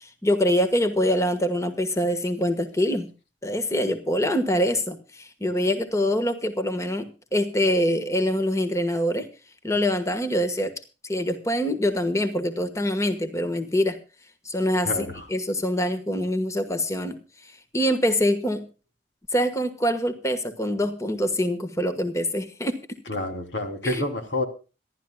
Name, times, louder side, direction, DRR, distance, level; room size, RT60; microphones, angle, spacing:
voice 1, 0.0-3.1 3.4-9.3 9.6-10.7 11.0-14.0 14.4-17.2 17.4-18.6 19.3-22.8 23.8-24.0, equal, 15° left, 9 dB, 1.4 m, -24 dB
voice 2, 23.1-24.4, left 1 dB, 80° left, 5 dB, 3.2 m, -28 dB
26.5 x 12.0 x 2.3 m, 0.33 s
head